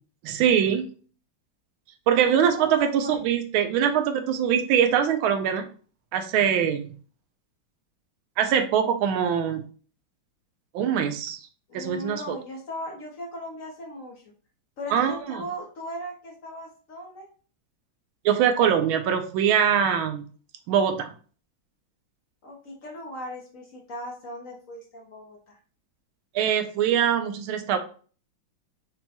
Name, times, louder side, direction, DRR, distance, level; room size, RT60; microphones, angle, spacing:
voice 1, 0.2-0.9 2.1-5.7 6.1-6.9 8.4-9.6 10.7-11.4 11.7-12.4 14.9-15.4 18.2-20.2 20.7-21.1 26.3-27.8, right 8 dB, 85° right, 7 dB, 1.4 m, -23 dB
voice 2, 2.2-3.2 11.7-14.2 14.8-17.3 22.4-25.6, equal, 55° left, -1 dB, 0.9 m, -38 dB
5.9 x 2.2 x 2.8 m, 0.40 s
omnidirectional pair, 2.2 m